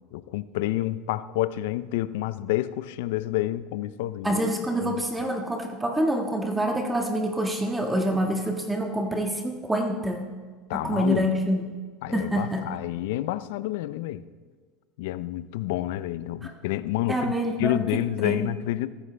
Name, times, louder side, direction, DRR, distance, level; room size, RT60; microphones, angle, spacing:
voice 1, 0.1-4.4 4.8-5.0 10.7-11.3 12.0-14.2 15.0-17.3 17.6-18.9, left 15 dB, 75° left, 0.5 m, -29 dB
voice 2, 4.2-10.3 10.7-11.8 12.1-12.7 16.4-16.5 17.1-18.5, right 1 dB, 10° right, 1.6 m, -27 dB
14.5 x 14.0 x 3.4 m
hypercardioid pair, 90°, 0 cm